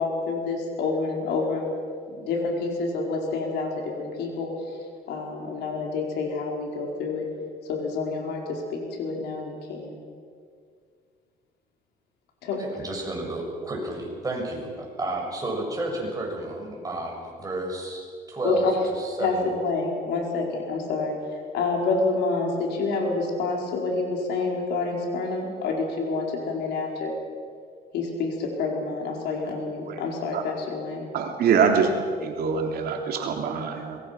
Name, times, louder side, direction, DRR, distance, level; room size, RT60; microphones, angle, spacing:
voice 1, 0.0-1.7 2.1-4.8 5.1-7.3 7.6-10.0 12.4-12.6 18.4-18.8 19.2-27.1 27.9-31.1, left 3 dB, 80° left, 1 dB, 4.8 m, -28 dB
voice 2, 12.6-18.7 19.0-19.4, right 2 dB, 20° right, 0 dB, 6.9 m, -31 dB
voice 3, 31.1-31.9 32.2-34.0, right 6 dB, 65° right, 3 dB, 3.1 m, -24 dB
24.0 x 22.0 x 6.1 m, 2.1 s
cardioid pair, 110°, 17 cm